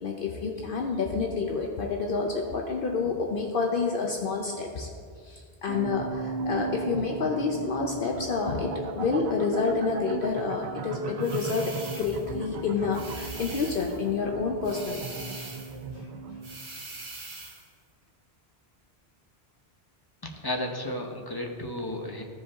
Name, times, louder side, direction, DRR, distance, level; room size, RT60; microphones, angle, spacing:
voice 1, 0.0-4.9 5.2-15.1 15.9-16.1, left 4 dB, 60° left, 1 dB, 0.8 m, -29 dB
sound 1, 5.7-16.5, right 4 dB, 85° right, 1.0 m, -36 dB
sound 2, 11.2-12.3 12.9-14.0 14.6-15.8 16.4-17.7, right 3 dB, 65° right, 1.5 m, -42 dB
voice 2, 20.2-22.2, left 1 dB, 25° left, 2 dB, 0.9 m, -33 dB
14.5 x 5.0 x 3.6 m, 2.1 s
omnidirectional pair, 1.1 m